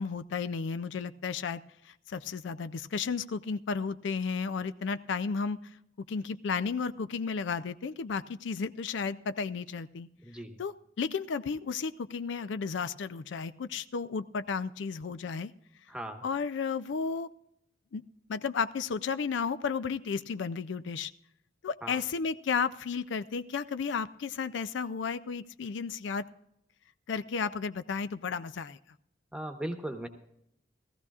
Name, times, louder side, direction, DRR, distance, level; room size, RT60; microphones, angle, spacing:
voice 1, 0.0-5.6 6.1-10.1 10.6-15.5 16.2-17.3 17.9-18.0 18.3-21.1 21.6-26.3 27.1-28.8, left 5 dB, 70° left, 13 dB, 0.4 m, -33 dB
voice 2, 10.2-10.6 15.9-16.2 21.8-22.0 29.3-30.1, right 1 dB, 5° right, 4 dB, 1.0 m, -38 dB
18.0 x 14.5 x 2.4 m, 0.79 s
head